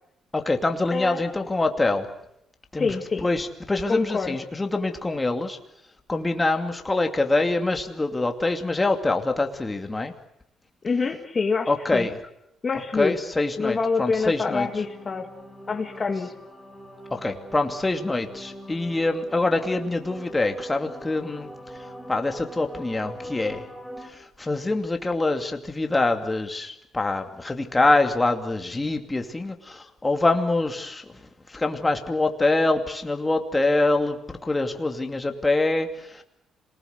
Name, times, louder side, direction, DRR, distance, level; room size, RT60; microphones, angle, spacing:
voice 1, 0.3-2.1 2.7-2.9 3.2-5.6 6.1-10.1 11.7-12.2 12.9-14.7 17.1-21.5 22.1-23.7 24.0-31.2 31.5-36.2, left 2 dB, 20° left, 5 dB, 2.6 m, -25 dB
voice 2, 0.9-1.2 2.8-3.3 3.9-4.4 10.8-12.1 12.6-13.2 13.6-15.3 15.7-16.3, left 4 dB, 35° left, 4 dB, 2.0 m, -26 dB
sound 1, 14.4-24.1, equal, 5° right, 4.1 m, -42 dB
27.0 x 19.5 x 8.1 m, 0.79 s
cardioid pair, 90°, 0 cm